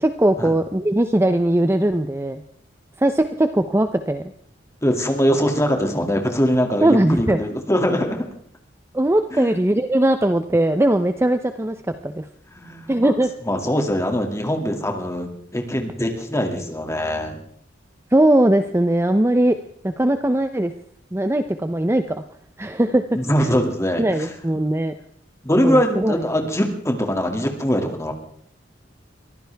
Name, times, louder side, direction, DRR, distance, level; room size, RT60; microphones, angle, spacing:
voice 1, 0.0-2.4 3.0-4.3 6.8-7.4 8.9-12.3 12.9-13.3 18.1-19.6 19.8-20.7 21.1-22.2 22.6-23.0 24.0-24.9 25.6-26.2, right 1 dB, 15° right, 9 dB, 0.6 m, -19 dB
voice 2, 4.8-8.3 9.3-9.5 12.5-13.1 13.5-17.4 23.1-24.3 25.4-28.1, equal, 15° left, 3 dB, 2.3 m, -22 dB
23.5 x 15.0 x 3.5 m, 0.66 s
head